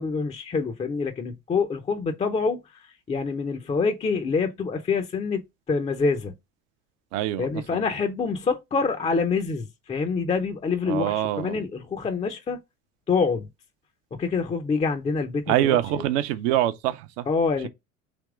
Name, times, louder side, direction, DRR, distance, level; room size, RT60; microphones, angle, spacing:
voice 1, 0.0-2.6 3.1-5.4 5.7-6.3 7.4-12.6 13.1-13.5 14.1-16.0 17.3-17.7, left 4 dB, 15° left, 0.5 m, -26 dB
voice 2, 7.1-7.8 10.9-11.6 15.5-17.3, right 13 dB, 60° right, 0.6 m, -25 dB
3.5 x 2.9 x 4.7 m
hypercardioid pair, 70°, 42 cm